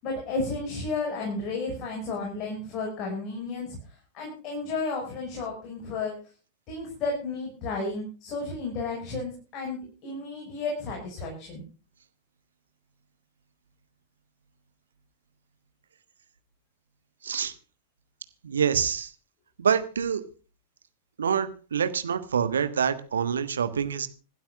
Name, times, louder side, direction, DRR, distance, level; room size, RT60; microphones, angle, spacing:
voice 1, 0.0-3.8 4.1-6.2 6.7-11.6, left 3 dB, 35° left, 0 dB, 5.7 m, -32 dB
voice 2, 17.2-17.5 18.4-19.1 19.6-20.2 21.2-24.1, right 7 dB, 70° right, 11 dB, 1.5 m, -26 dB
26.0 x 12.0 x 2.4 m, 0.36 s
figure-of-eight pair, 90°, 0 cm